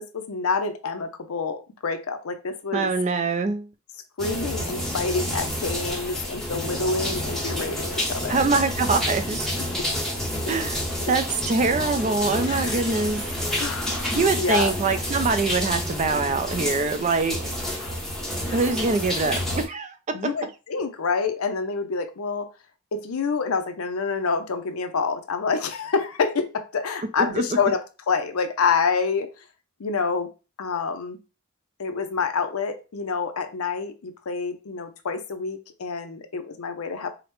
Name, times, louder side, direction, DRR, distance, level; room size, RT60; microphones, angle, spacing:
voice 1, 0.0-2.9 4.2-8.4 10.4-10.5 12.5-12.8 13.6-14.7 17.8-18.0 18.5-18.6 20.1-22.5 22.9-27.8 28.1-29.3 29.8-30.3 30.6-31.2 31.8-37.1, left 5 dB, 85° left, 0.6 m, -27 dB
voice 2, 2.7-3.7 8.3-9.6 10.5-10.8 11.1-13.2 14.1-17.4 18.5-19.9 27.2-27.4, right 4 dB, 35° right, 0.4 m, -24 dB
sound 1, 4.2-19.7, left 1 dB, ahead, 0.8 m, -29 dB
4.9 x 2.1 x 3.0 m
head